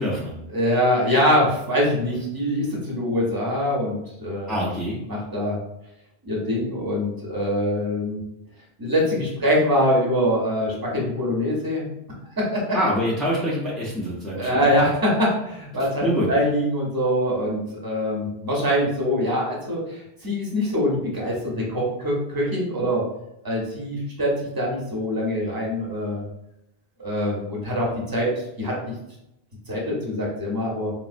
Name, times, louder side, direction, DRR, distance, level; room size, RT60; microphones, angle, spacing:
voice 1, 0.0-0.4 4.5-5.0 12.7-14.8 16.0-16.3, equal, ahead, -6 dB, 0.3 m, -25 dB
voice 2, 0.5-4.5 5.1-5.6 6.2-8.2 8.8-11.8 12.4-12.8 14.3-23.0 23.4-26.2 27.0-28.3 28.6-28.8 29.7-30.9, equal, 25° right, -3 dB, 0.7 m, -24 dB
4.0 x 2.0 x 2.5 m, 0.84 s
omnidirectional pair, 1.1 m